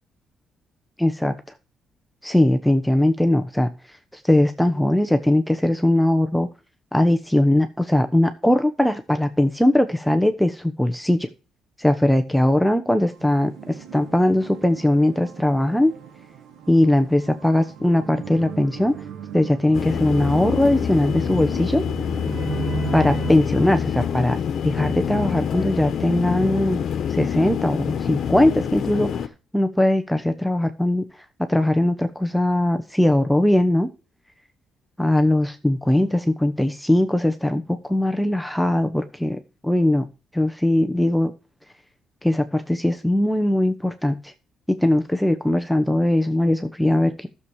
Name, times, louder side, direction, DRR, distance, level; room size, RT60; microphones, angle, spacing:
voice 1, 1.0-1.3 2.2-3.7 4.1-6.5 6.9-11.3 11.8-15.9 16.7-18.9 19.3-21.8 22.9-24.4 24.6-26.8 27.1-29.3 29.5-31.0 31.5-33.9 35.0-40.0 40.3-41.3 42.2-44.3 44.8-47.3, left 1 dB, 5° left, 7 dB, 1.0 m, -20 dB
sound 1, 13.1-23.3, right 7 dB, 75° right, 1.6 m, -36 dB
sound 2, 19.7-29.3, left 7 dB, 65° left, 1.3 m, -26 dB
12.0 x 7.2 x 4.7 m, 0.33 s
cardioid pair, 90°, 0 cm